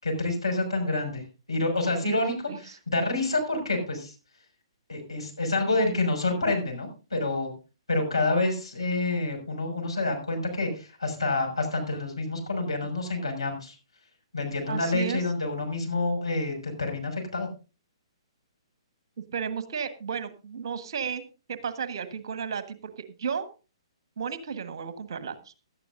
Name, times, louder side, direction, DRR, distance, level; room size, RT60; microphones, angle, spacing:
voice 1, 0.0-1.2 1.5-2.3 2.7-4.1 4.9-7.5 7.9-13.7 14.3-17.5, left 2 dB, 75° left, 3 dB, 6.0 m, -28 dB
voice 2, 14.7-15.2 19.3-21.2 21.5-23.5 24.2-25.5, right 6 dB, 50° right, 11 dB, 1.5 m, -33 dB
17.5 x 12.5 x 2.6 m, 0.32 s
figure-of-eight pair, 125°, 3 cm